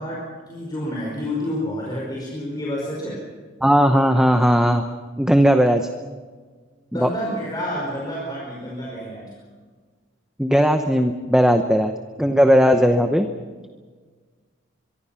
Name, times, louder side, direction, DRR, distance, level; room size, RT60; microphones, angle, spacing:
voice 1, 0.0-3.2 6.9-9.3, equal, 20° left, -4 dB, 5.1 m, -29 dB
voice 2, 3.6-4.8 5.2-5.9 6.9-7.1 10.4-11.9 12.2-13.3, equal, 5° right, 6 dB, 0.8 m, -17 dB
24.0 x 23.5 x 5.8 m, 1.5 s
head